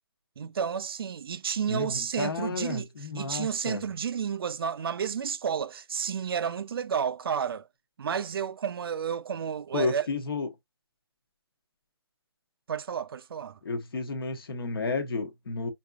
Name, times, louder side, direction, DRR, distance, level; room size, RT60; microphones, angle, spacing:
voice 1, 0.4-2.9 3.1-7.7 8.0-10.1 12.7-13.6, right 7 dB, 65° right, 0.4 m, -31 dB
voice 2, 1.7-3.8 9.7-10.5 13.6-15.7, left 3 dB, 65° left, 1.1 m, -32 dB
5.2 x 2.7 x 2.3 m
hypercardioid pair, 155°, 13 cm